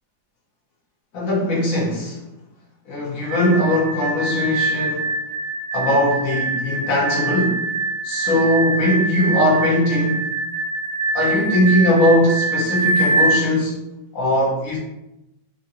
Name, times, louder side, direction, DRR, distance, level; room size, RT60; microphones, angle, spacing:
voice 1, 1.1-2.2 2.9-5.1 5.7-7.7 8.0-10.3 11.1-13.8 14.1-14.8, left 1 dB, 50° left, 1.3 m, -20 dB
sound 1, 3.2-13.4, right 2 dB, 60° right, 0.6 m, -24 dB
3.8 x 2.8 x 2.7 m
omnidirectional pair, 2.1 m